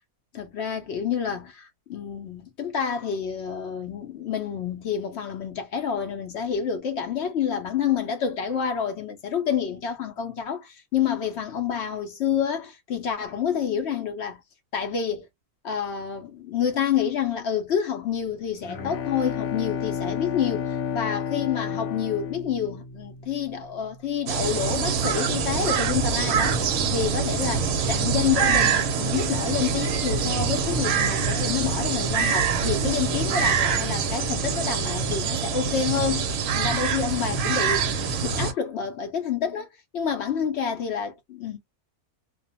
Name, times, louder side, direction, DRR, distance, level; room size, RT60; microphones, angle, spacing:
voice 1, 0.3-14.4 14.7-15.3 15.6-36.3 36.5-37.9 38.2-39.7 39.9-41.6, left 8 dB, 65° left, 0.7 m, -28 dB
Bowed string instrument, 18.3-23.8, left 7 dB, 85° left, 1.1 m, -31 dB
sound 1, 24.3-38.5, right 6 dB, 65° right, 0.8 m, -25 dB
2.4 x 2.1 x 2.6 m
omnidirectional pair, 1.6 m